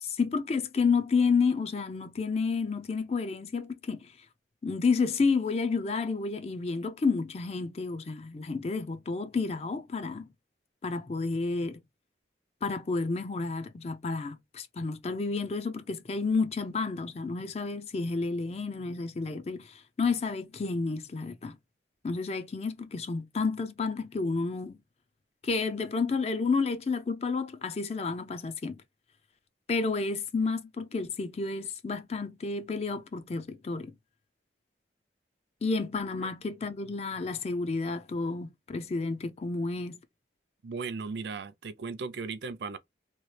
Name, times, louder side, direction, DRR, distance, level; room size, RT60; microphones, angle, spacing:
voice 1, 0.0-4.1 4.6-10.3 10.8-11.8 12.6-21.6 22.0-24.8 25.4-28.8 29.7-33.9 35.6-40.0, left 4 dB, 35° left, 0.4 m, -30 dB
voice 2, 40.6-42.8, right 4 dB, 65° right, 0.4 m, -36 dB
3.0 x 2.3 x 3.1 m
head